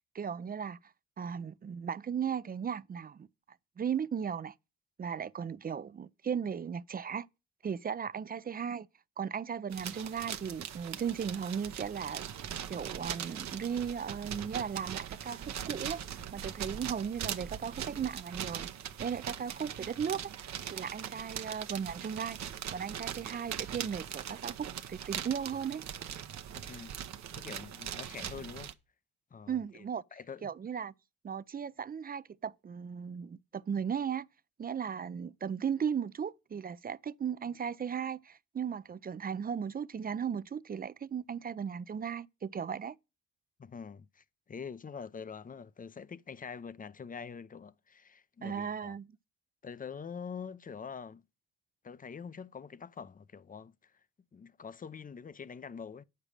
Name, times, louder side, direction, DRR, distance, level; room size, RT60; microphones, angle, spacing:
voice 1, 0.1-0.8 1.2-3.3 3.8-4.5 5.0-7.3 7.6-8.9 9.2-12.3 12.7-16.0 16.3-18.7 19.0-20.3 20.7-22.4 22.7-25.8 29.5-30.0 30.4-30.9 31.2-34.3 34.6-43.0 48.4-49.1, right 7 dB, 30° right, 0.5 m, -36 dB
sound 1, 9.7-28.7, right 9 dB, 60° right, 0.8 m, -41 dB
voice 2, 26.6-26.9 27.3-28.7 29.3-29.8 30.1-30.5 43.6-49.0 49.6-51.2 51.8-53.9 54.3-56.0, left 6 dB, 25° left, 0.6 m, -45 dB
8.6 x 6.7 x 4.9 m
supercardioid pair, 55°, 31 cm